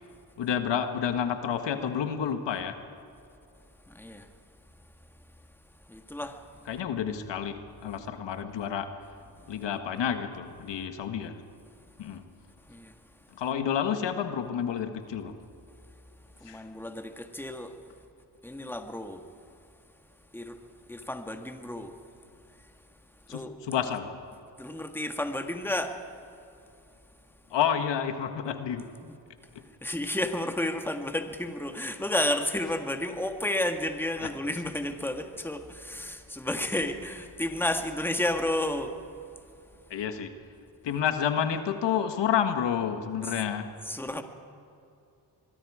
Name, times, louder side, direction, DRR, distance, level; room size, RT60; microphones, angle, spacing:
voice 1, 0.4-2.7 6.7-9.0 9.5-11.4 12.0-12.3 13.4-15.4 16.5-16.6 23.3-24.2 27.5-28.9 34.2-34.3 39.9-40.3 40.8-43.7, left 8 dB, 75° left, 8 dB, 1.6 m, -29 dB
voice 2, 3.9-4.3 5.9-6.4 9.4-9.6 12.7-13.0 16.4-17.8 18.4-19.3 20.3-20.6 20.9-22.0 22.6-22.7 23.3-23.5 24.6-26.0 29.0-29.1 29.8-39.0 43.2-43.3 43.9-44.2, left 1 dB, 5° left, 5 dB, 1.8 m, -32 dB
25.5 x 21.5 x 5.0 m, 2.7 s
cardioid pair, 80°, 43 cm